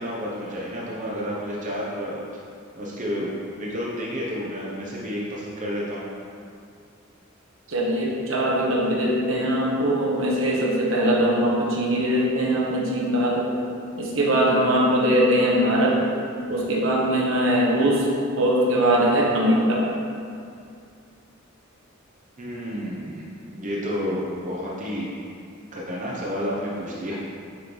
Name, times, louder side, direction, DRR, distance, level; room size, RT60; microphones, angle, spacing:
voice 1, 0.0-2.2 2.7-6.1 22.4-23.3 23.5-25.1 25.7-27.2, equal, 40° right, -5 dB, 0.8 m, -30 dB
voice 2, 7.7-13.5 14.0-16.0 16.5-18.1 18.4-19.8, right 1 dB, 70° right, -3 dB, 1.2 m, -21 dB
7.8 x 3.1 x 5.3 m, 2.4 s
head